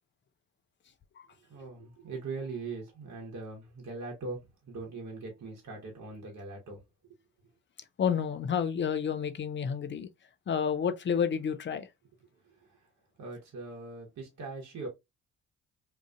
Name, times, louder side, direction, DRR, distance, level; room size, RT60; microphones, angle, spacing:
voice 1, 1.4-6.8 12.4-12.8 13.2-14.9, right 3 dB, 50° right, 1.2 m, -41 dB
voice 2, 8.0-10.1 10.5-11.9, left 7 dB, 35° left, 0.5 m, -30 dB
2.8 x 2.4 x 2.3 m
hypercardioid pair, 50°, 34 cm